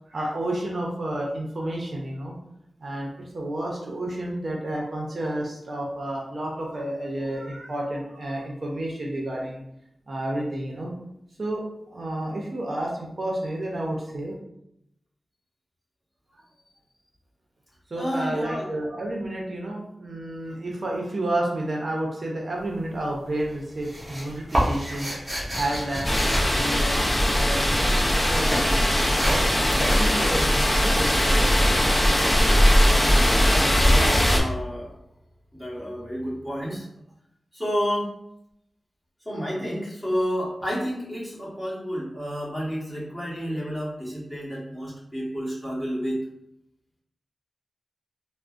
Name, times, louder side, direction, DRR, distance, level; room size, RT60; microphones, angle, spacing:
voice 1, 0.1-2.3 2.8-9.6 10.1-10.9 11.4-12.9 13.2-14.3 17.9-28.8 29.8-31.7, right 1 dB, 55° right, -2 dB, 0.6 m, -31 dB
voice 2, 18.0-18.7 33.3-34.9 35.5-36.9 37.5-38.1 39.2-46.2, equal, 10° left, -7 dB, 1.4 m, -30 dB
sound 1, 22.6-23.1 23.4-27.4 27.7-33.3, equal, 10° right, 1.2 m, -30 dB
sound 2, 26.0-34.4, equal, 25° left, 0.6 m, -20 dB
3.5 x 2.1 x 2.5 m, 0.78 s
wide cardioid pair, 65°, 0 cm